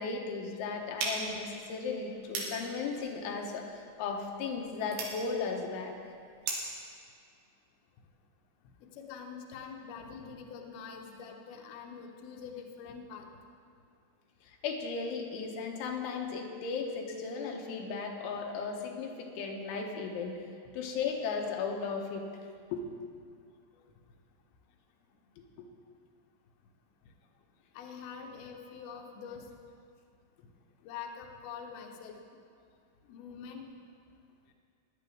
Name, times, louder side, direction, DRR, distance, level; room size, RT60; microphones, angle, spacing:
voice 1, 0.0-6.0 14.4-20.3 20.7-22.2 22.7-22.8 25.4-25.7, left 5 dB, 90° left, 1 dB, 3.4 m, -36 dB
sound 1, 1.0-6.8, right 3 dB, 65° right, 3.6 m, -40 dB
voice 2, 8.8-13.3 20.6-21.0 23.7-23.8 27.7-29.5 30.8-32.2 33.0-33.7, left 6 dB, 70° left, 2 dB, 2.4 m, -45 dB
17.0 x 10.5 x 3.7 m, 2.2 s
omnidirectional pair, 5.4 m